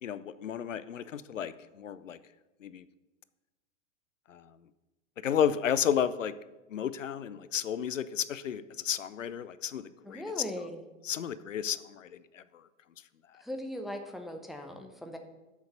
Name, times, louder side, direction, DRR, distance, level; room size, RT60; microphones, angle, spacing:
voice 1, 0.0-2.2 2.6-2.8 4.3-4.5 5.2-6.3 6.7-10.2 11.1-12.4, left 8 dB, 70° left, 15 dB, 0.6 m, -32 dB
voice 2, 10.0-10.8 13.4-15.2, left 1 dB, ahead, 4 dB, 0.6 m, -39 dB
7.1 x 6.4 x 6.6 m, 1.1 s
figure-of-eight pair, 100°, 39 cm